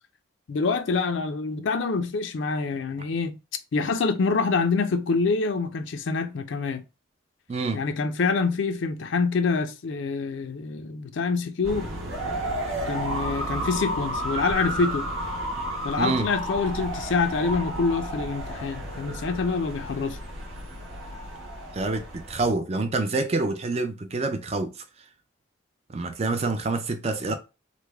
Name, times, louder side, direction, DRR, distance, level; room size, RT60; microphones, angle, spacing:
voice 1, 0.5-3.4 3.7-6.8 7.7-11.9 12.9-15.1 15.8-20.2, left 4 dB, 65° left, 0.4 m, -26 dB
voice 2, 7.5-7.8 16.0-16.3 21.7-24.7 25.9-27.3, right 3 dB, 30° right, 0.4 m, -27 dB
sound 1, 11.6-22.5, right 1 dB, 80° right, 1.1 m, -32 dB
3.3 x 2.0 x 3.3 m
head